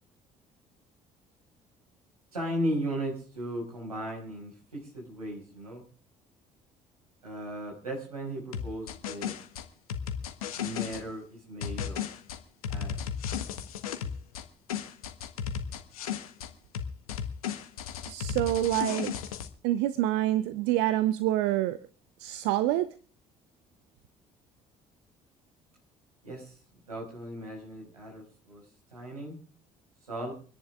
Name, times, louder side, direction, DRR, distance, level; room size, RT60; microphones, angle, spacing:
voice 1, 2.3-5.8 7.2-9.3 10.6-12.1 12.7-13.0 26.2-26.6 26.9-28.6 28.9-29.4 30.1-30.3, right 1 dB, 85° right, -1 dB, 5.8 m, -36 dB
sound 1, 8.5-11.0 11.6-14.4 14.7-16.5 16.7-19.5, left 8 dB, 75° left, 1.5 m, -34 dB
voice 2, 18.1-19.1 19.6-21.8 22.2-22.9, right 14 dB, 65° right, 15 dB, 0.8 m, -27 dB
26.5 x 10.5 x 3.6 m, 0.40 s
figure-of-eight pair, 50°, 19 cm